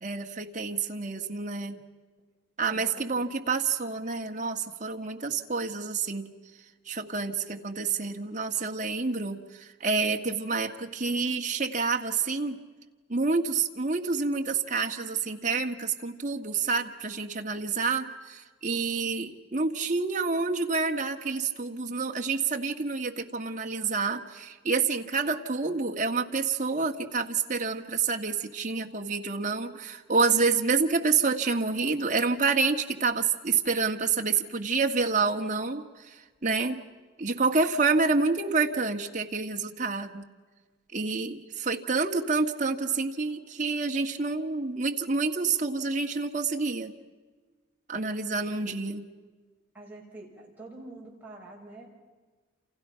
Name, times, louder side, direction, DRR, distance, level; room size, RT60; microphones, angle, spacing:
voice 1, 0.0-1.8 2.6-6.3 6.9-12.6 13.1-36.8 37.2-40.2 40.9-46.9 47.9-49.0, right 4 dB, 40° right, 3 dB, 1.7 m, -28 dB
voice 2, 2.7-3.3 7.5-7.6 48.6-48.7 49.7-51.9, right 2 dB, 10° right, -3 dB, 6.1 m, -46 dB
29.0 x 28.0 x 5.7 m, 1.3 s
head